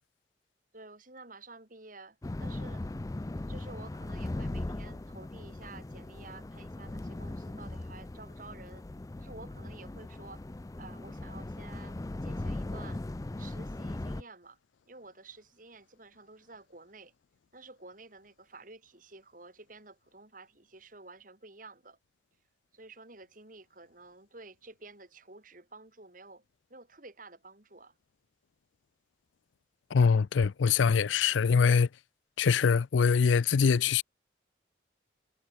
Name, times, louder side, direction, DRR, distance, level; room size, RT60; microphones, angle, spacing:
voice 1, 0.7-2.8 3.5-8.9 9.2-10.4 10.8-13.0 13.4-14.6 14.9-17.1 17.5-22.0 22.7-26.4 26.7-27.9, right 3 dB, 45° right, 3.9 m, -51 dB
sound 1, 2.2-14.2, left 2 dB, 20° left, 0.4 m, -39 dB
voice 2, 29.9-31.9 32.4-34.0, left 6 dB, 90° left, 0.4 m, -23 dB
head